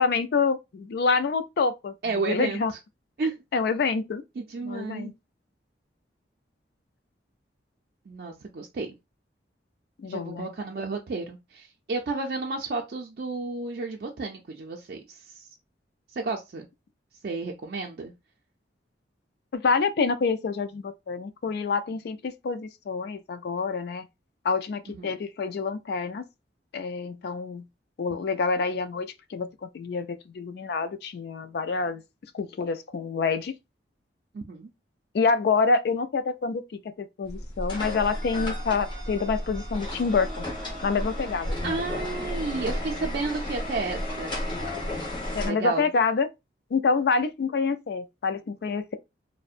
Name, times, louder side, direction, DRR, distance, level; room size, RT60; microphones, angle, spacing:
voice 1, 0.0-2.7 3.5-4.2 4.6-5.1 10.0-10.5 19.5-24.1 24.4-26.2 26.7-27.6 28.0-32.0 32.3-33.5 35.1-40.5 40.8-41.6 45.3-46.3 46.7-49.0, left 4 dB, 60° left, 0.3 m, -27 dB
voice 2, 2.0-2.6 3.2-3.4 4.4-5.1 8.1-8.9 10.1-15.5 16.1-16.7 17.2-18.1 25.0-25.2 34.3-34.7 41.6-44.3 45.4-45.9, right 3 dB, 55° right, 0.4 m, -32 dB
sound 1, 37.3-45.5, left 1 dB, 25° left, 0.9 m, -33 dB
2.6 x 2.1 x 2.4 m
head